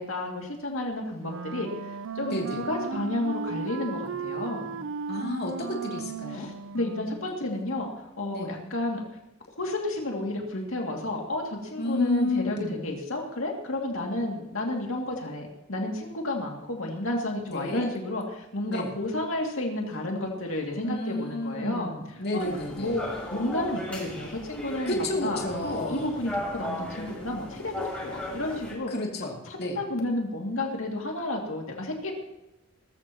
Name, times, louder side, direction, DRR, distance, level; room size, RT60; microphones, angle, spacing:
voice 1, 0.0-4.8 6.3-7.9 8.2-9.0 9.6-21.9 22.3-22.5 22.8-28.9 29.5-32.1, left 1 dB, 70° left, 0 dB, 2.5 m, -31 dB
Wind instrument woodwind instrument, 1.2-7.4, right 5 dB, 65° right, 0.6 m, -36 dB
voice 2, 5.1-6.5 8.3-8.5 11.8-12.9 17.5-17.9 18.7-18.9 20.8-23.0 24.9-26.1 28.9-29.8, left 1 dB, 45° left, -1 dB, 2.8 m, -31 dB
sound 1, 22.4-28.7, left 1 dB, 5° left, 5.8 m, -36 dB
20.0 x 14.0 x 3.0 m, 0.92 s
head